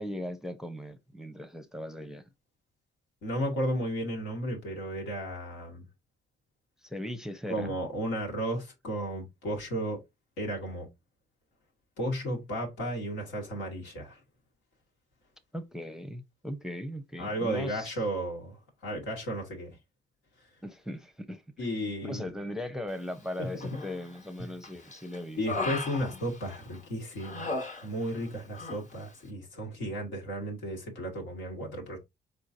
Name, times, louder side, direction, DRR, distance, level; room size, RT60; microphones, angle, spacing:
voice 1, 0.0-2.3 6.8-7.7 15.5-18.0 20.6-21.4 21.8-25.4, left 1 dB, 5° right, 0.7 m, -38 dB
voice 2, 3.2-5.8 7.5-10.0 10.4-10.9 12.0-14.2 17.2-19.8 20.4-20.5 21.6-22.3 23.4-23.8 24.4-24.5 25.4-32.0, equal, 90° left, 1.8 m, -34 dB
Human voice, 23.6-24.2 24.6-26.8 27.2-28.3 28.5-28.8, left 3 dB, 40° left, 1.3 m, -37 dB
4.4 x 3.8 x 2.7 m
supercardioid pair, 65°, 20 cm